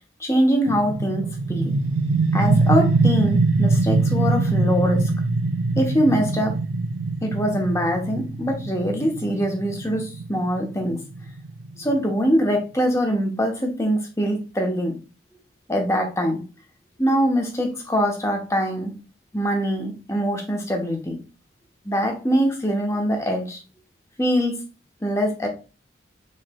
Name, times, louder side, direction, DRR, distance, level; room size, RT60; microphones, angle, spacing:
voice 1, 0.2-1.8 2.3-5.1 5.8-6.6 7.2-11.0 11.8-15.0 15.7-16.4 17.0-18.9 19.3-21.2 21.8-23.6 24.2-24.6 25.0-25.5, equal, 15° left, 2 dB, 0.9 m, -23 dB
sound 1, 0.7-12.1, right 3 dB, 80° right, 0.4 m, -23 dB
6.5 x 3.1 x 2.3 m, 0.32 s
head